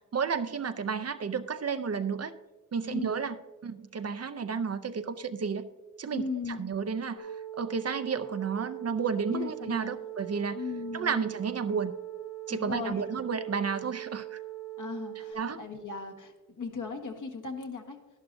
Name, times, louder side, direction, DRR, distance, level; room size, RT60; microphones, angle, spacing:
voice 1, 0.0-2.3 2.7-3.4 3.6-5.7 6.0-6.2 6.6-10.6 10.9-11.9 12.5-14.4 15.3-15.6, right 6 dB, 45° right, 10 dB, 0.6 m, -32 dB
voice 2, 6.1-6.6 9.3-10.0 10.5-11.2 12.5-13.0 14.8-18.0, left 4 dB, 60° left, 4 dB, 1.5 m, -37 dB
sound 1, 7.2-15.3, right 15 dB, 80° left, 2.2 m, -41 dB
11.5 x 11.5 x 2.6 m, 1.2 s
cardioid pair, 60°, 35 cm